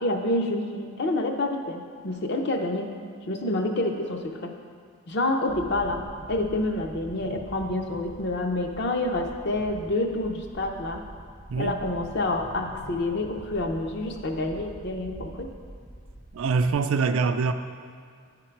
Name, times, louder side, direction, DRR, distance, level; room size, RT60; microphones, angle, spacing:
voice 1, 0.0-2.9 3.3-4.5 5.1-11.0 11.6-15.5, left 2 dB, 50° left, 4 dB, 0.6 m, -28 dB
sound 1, 5.5-16.7, equal, 75° left, 1.7 m, -45 dB
voice 2, 16.3-17.5, right 4 dB, 65° right, 9 dB, 0.4 m, -24 dB
10.0 x 3.7 x 4.5 m, 2.1 s
head